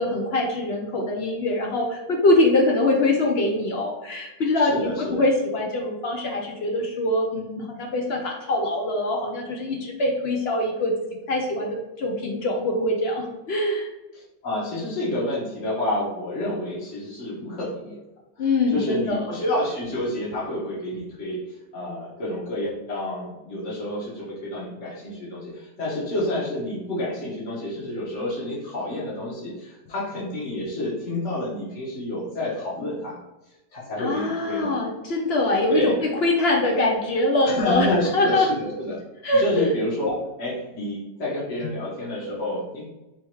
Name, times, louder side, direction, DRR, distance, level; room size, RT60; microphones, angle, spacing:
voice 1, 0.0-10.9 11.3-13.9 18.4-19.4 34.0-38.5 39.2-39.7, left 2 dB, 75° left, 1 dB, 0.5 m, -23 dB
voice 2, 4.6-5.2 14.1-18.0 18.7-21.4 21.7-33.2 33.7-34.7 35.7-35.9 37.4-39.0 39.4-42.8, left 1 dB, 45° left, -7 dB, 1.5 m, -29 dB
3.4 x 2.9 x 4.5 m, 1.0 s
omnidirectional pair, 1.8 m